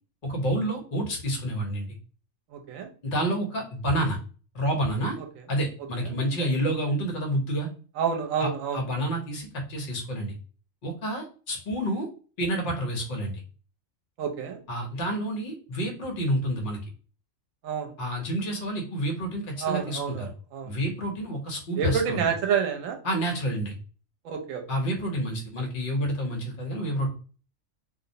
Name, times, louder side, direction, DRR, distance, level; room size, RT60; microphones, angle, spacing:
voice 1, 0.2-1.9 3.0-4.2 4.5-5.2 5.5-7.7 8.4-10.3 10.8-12.1 12.4-13.4 14.7-16.8 18.0-20.3 20.6-22.2 23.0-23.7 24.7-27.1, right 1 dB, 50° left, 1 dB, 0.8 m, -29 dB
voice 2, 2.5-2.9 8.0-8.8 14.2-14.6 17.6-17.9 19.6-20.7 21.8-23.0 24.2-24.6, right 7 dB, 80° right, 4 dB, 1.0 m, -28 dB
2.4 x 2.0 x 2.6 m, 0.39 s
omnidirectional pair, 1.4 m